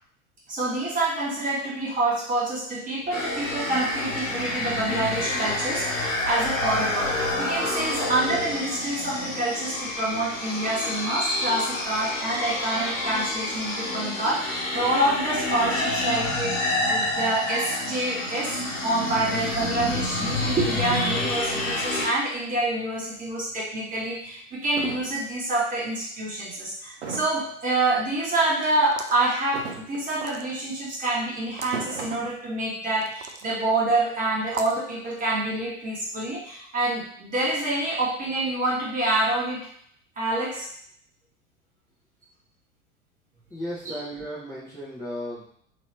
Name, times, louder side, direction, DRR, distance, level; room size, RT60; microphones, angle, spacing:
voice 1, 0.5-18.6 18.8-39.7 40.2-40.7 43.8-43.9, right 2 dB, 20° right, -5 dB, 1.3 m, -27 dB
sound 1, 3.1-22.1, left 1 dB, 75° left, 0.9 m, -28 dB
sound 2, 23.5-23.6 24.2-24.3 24.7-25.2 27.0-27.5 29.4-30.2 31.5-32.3, right 5 dB, 55° right, 0.9 m, -36 dB
sound 3, 28.8-29.3 30.1-30.7 31.5-31.8 33.0-33.5 34.5-34.8, right 5 dB, 75° right, 0.5 m, -37 dB
voice 2, 43.5-45.4, equal, 10° left, -10 dB, 0.9 m, -35 dB
3.0 x 3.0 x 3.2 m, 0.63 s
figure-of-eight pair, 85°, 40 cm